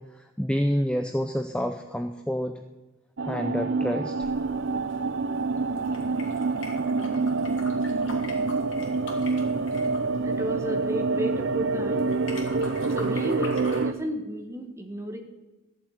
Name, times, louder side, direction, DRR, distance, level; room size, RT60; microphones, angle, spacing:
voice 1, 0.2-2.5 3.3-4.3, equal, 5° left, 6 dB, 0.6 m, -28 dB
sound 1, 3.2-13.9, right 3 dB, 60° right, 0.6 m, -27 dB
sound 2, 4.2-13.9, left 3 dB, 60° left, 3.1 m, -45 dB
voice 2, 10.2-12.0 13.0-15.2, equal, 15° right, 3 dB, 1.7 m, -32 dB
14.5 x 7.4 x 9.4 m, 1.1 s
head